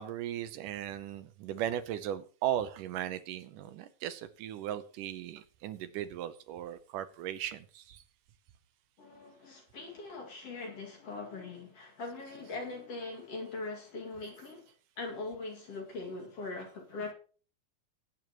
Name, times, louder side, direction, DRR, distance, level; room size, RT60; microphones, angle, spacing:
voice 1, 0.0-8.0 12.3-12.4, right 11 dB, 80° right, 2.3 m, -37 dB
voice 2, 9.0-17.1, left 3 dB, 50° left, 3.1 m, -41 dB
19.0 x 9.3 x 3.0 m
omnidirectional pair, 3.9 m